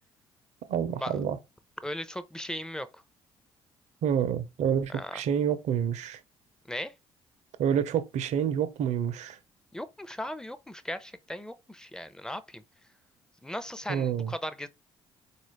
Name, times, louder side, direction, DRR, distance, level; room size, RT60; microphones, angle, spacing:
voice 1, 0.7-1.4 4.0-6.2 7.6-9.4 13.9-14.3, right 8 dB, 65° right, 0.6 m, -28 dB
voice 2, 1.8-3.0 4.9-5.2 6.7-6.9 9.7-12.6 13.4-14.7, left 1 dB, 5° left, 0.6 m, -37 dB
3.9 x 2.4 x 3.2 m
hypercardioid pair, 55°, 13 cm